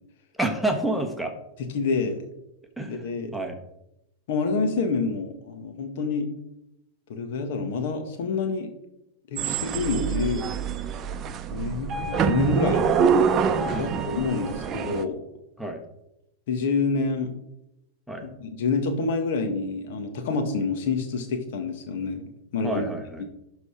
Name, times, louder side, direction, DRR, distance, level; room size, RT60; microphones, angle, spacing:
voice 1, 0.4-1.3 2.8-3.6 9.4-9.6 13.7-13.9 15.6-15.8 18.1-18.3 22.6-23.2, right 1 dB, ahead, 3 dB, 1.2 m, -29 dB
voice 2, 1.7-2.2 2.8-3.3 4.3-6.3 7.1-8.7 9.3-10.5 11.5-12.9 13.8-15.2 16.5-17.3 18.2-22.3 22.5-22.8 23.2-23.3, left 4 dB, 65° left, 6 dB, 1.5 m, -27 dB
sound 1, 9.4-15.0, right 6 dB, 35° right, 0.7 m, -25 dB
11.5 x 4.1 x 4.9 m, 0.84 s
hypercardioid pair, 110°, 0 cm